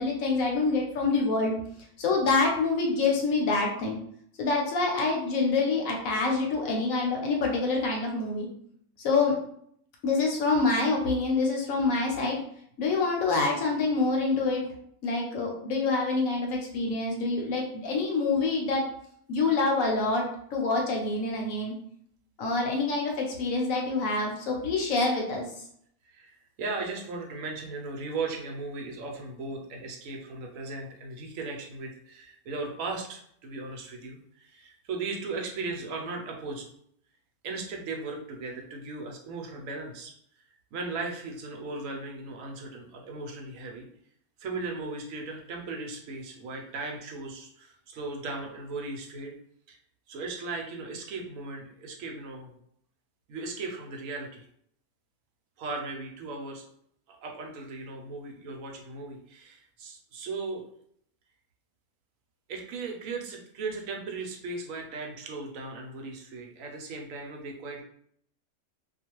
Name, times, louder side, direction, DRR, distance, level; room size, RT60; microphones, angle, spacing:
voice 1, 0.0-1.5 2.0-4.0 4.4-8.5 9.0-9.4 10.0-12.4 12.8-14.6 15.0-18.8 19.3-20.3 20.5-21.7 22.4-25.5, left 3 dB, 70° left, 0 dB, 1.0 m, -26 dB
voice 2, 26.1-36.6 37.4-40.1 40.7-43.9 44.4-49.3 49.7-49.8 50.1-52.5 53.3-54.5 55.6-56.6 57.1-60.6 62.5-67.8, right 3 dB, 70° right, 1 dB, 0.9 m, -37 dB
2.4 x 2.2 x 2.9 m, 0.67 s
omnidirectional pair, 1.6 m